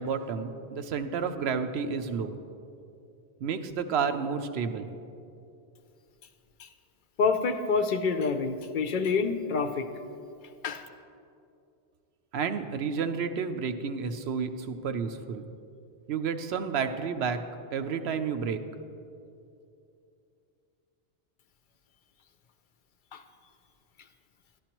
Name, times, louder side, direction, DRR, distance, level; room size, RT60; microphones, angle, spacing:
voice 1, 0.0-2.4 3.4-4.9 12.3-15.5 16.1-17.4 17.7-18.6, right 6 dB, 80° right, 9 dB, 0.9 m, -31 dB
voice 2, 7.2-9.9 10.6-10.8 23.1-23.2, left 5 dB, 55° left, 7 dB, 0.7 m, -27 dB
12.0 x 12.0 x 3.0 m, 2.6 s
omnidirectional pair, 1.1 m